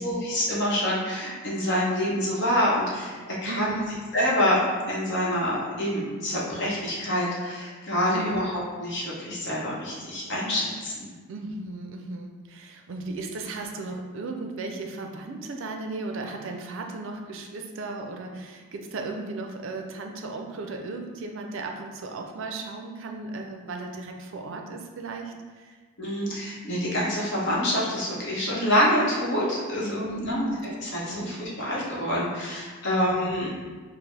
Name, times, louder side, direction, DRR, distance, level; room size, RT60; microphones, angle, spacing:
voice 1, 0.0-3.7 4.1-4.6 4.9-11.1 26.0-33.5, equal, 50° left, -5 dB, 0.9 m, -26 dB
voice 2, 3.5-4.0 8.1-8.5 11.3-25.8 30.0-30.6 31.0-31.4 32.9-33.4, right 3 dB, 60° right, 3 dB, 0.4 m, -36 dB
5.1 x 2.0 x 3.2 m, 1.4 s
head